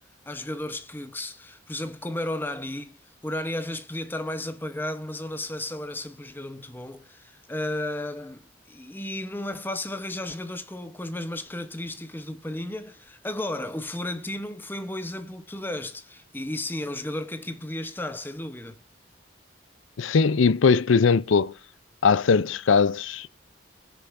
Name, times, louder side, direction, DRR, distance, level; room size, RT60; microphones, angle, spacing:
voice 1, 0.3-3.0 3.2-18.8, left 1 dB, 10° left, 0.8 m, -34 dB
voice 2, 20.0-21.5 22.0-23.3, left 5 dB, 85° left, 0.5 m, -20 dB
20.5 x 6.8 x 2.6 m
head